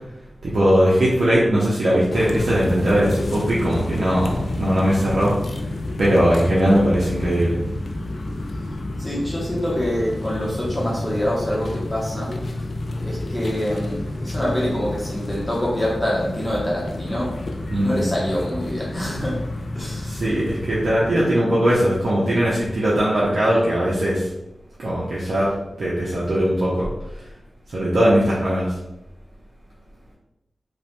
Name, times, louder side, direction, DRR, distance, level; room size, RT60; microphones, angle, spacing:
voice 1, 0.4-5.4 6.0-7.6 17.7-18.0 20.0-24.3 24.8-26.9 27.7-28.7, equal, 75° right, -7 dB, 0.6 m, -20 dB
sound 1, 2.1-21.2, left 2 dB, 60° left, 0.3 m, -30 dB
voice 2, 9.0-12.3 13.0-17.3 17.7-19.4 19.7-20.2, equal, 15° left, -6 dB, 0.7 m, -25 dB
3.0 x 2.1 x 2.9 m, 0.92 s
wide cardioid pair, 90°, 0 cm